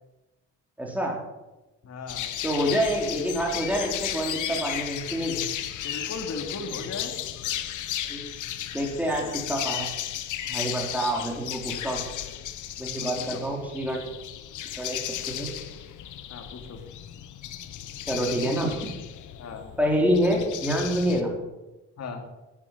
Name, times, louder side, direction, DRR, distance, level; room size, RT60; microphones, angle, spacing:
voice 1, 0.8-1.2 2.4-5.4 8.1-8.3 8.7-9.9 10.5-12.0 12.8-14.1 14.8-15.5 18.1-18.7 19.8-21.3, equal, 5° right, -1 dB, 3.6 m, -27 dB
voice 2, 1.8-2.3 5.8-7.1 9.0-9.3 11.2-11.3 12.8-13.4 16.3-16.8 19.4-19.7 22.0-22.2, left 4 dB, 60° left, 3 dB, 3.0 m, -37 dB
sound 1, 2.1-21.2, left 11 dB, 80° left, 1.2 m, -35 dB
11.0 x 10.0 x 7.5 m, 1.0 s
cardioid pair, 90°, 30 cm